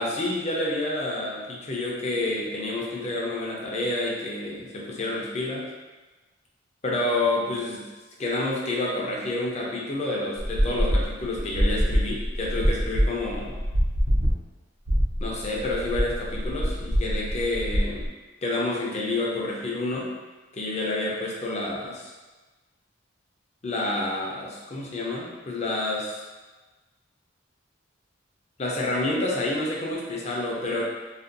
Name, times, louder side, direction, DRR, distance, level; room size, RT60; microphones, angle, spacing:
voice 1, 0.0-5.7 6.8-7.8 8.2-13.5 15.2-18.1 18.4-20.1 20.5-22.1 23.6-26.2 28.6-30.8, left 2 dB, 30° left, -3 dB, 0.4 m, -29 dB
sound 1, 10.4-14.3 14.9-18.1, equal, 60° right, 0.4 m, -25 dB
2.5 x 2.2 x 2.5 m, 1.2 s
head